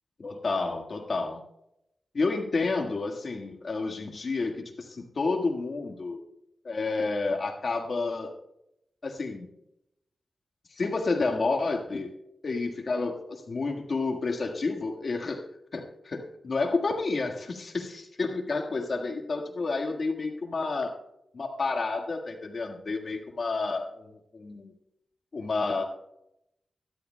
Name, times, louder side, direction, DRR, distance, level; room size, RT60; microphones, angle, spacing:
voice 1, 0.2-1.4 2.1-6.2 6.6-8.3 9.0-9.5 10.7-12.1 12.4-15.4 15.7-20.9 21.3-24.7 25.3-25.8, left 3 dB, 60° left, 3 dB, 1.6 m, -30 dB
23.0 x 11.5 x 2.2 m, 0.80 s
cardioid pair, 60°, 0 cm